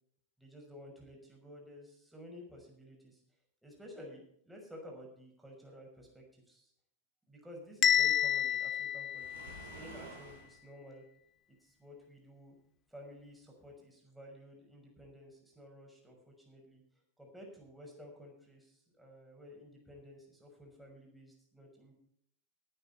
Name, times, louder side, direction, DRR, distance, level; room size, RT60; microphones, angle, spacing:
voice 1, 0.4-3.2 3.6-6.7 7.3-11.0 11.6-12.6 12.9-16.8 17.2-21.9, equal, 5° right, -1 dB, 6.0 m, -53 dB
Bell, 7.8-9.9, left 9 dB, 30° left, 0.7 m, -30 dB
Waves surf, 9.1-10.6, right 3 dB, 65° right, 4.2 m, -50 dB
18.5 x 9.2 x 4.4 m, 0.66 s
figure-of-eight pair, 90°, 0 cm